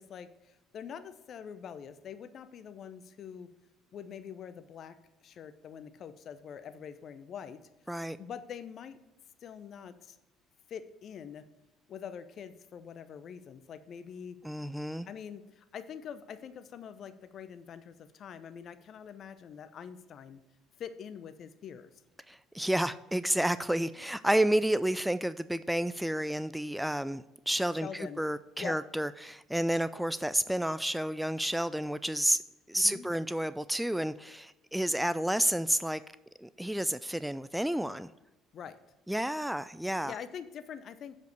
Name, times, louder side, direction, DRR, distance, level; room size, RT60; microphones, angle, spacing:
voice 1, 0.0-3.5 3.9-5.0 5.2-7.6 8.2-9.0 9.4-10.2 10.7-11.4 11.9-14.4 15.1-20.4 20.8-21.9 27.7-28.2 28.6-28.8 32.7-33.1 38.5-38.8 40.1-41.2, left 8 dB, 50° left, 0.6 m, -44 dB
voice 2, 14.4-15.1 22.3-32.4 32.7-36.0 36.4-38.1 39.1-40.2, right 1 dB, 5° right, 0.3 m, -30 dB
7.6 x 5.3 x 6.6 m
figure-of-eight pair, 55°, 0 cm